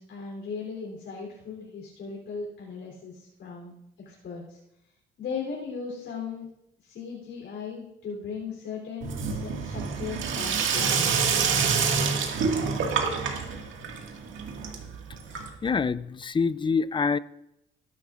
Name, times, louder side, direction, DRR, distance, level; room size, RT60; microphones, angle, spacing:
voice 1, 0.0-3.7 4.1-4.6 5.2-6.5 6.8-11.1, left 5 dB, 70° left, 3.5 m, -37 dB
Sink (filling or washing), 9.0-15.8, right 5 dB, 75° right, 2.0 m, -27 dB
voice 2, 15.6-17.2, left 5 dB, 25° left, 0.5 m, -25 dB
18.0 x 10.5 x 2.5 m
cardioid pair, 90°, 20 cm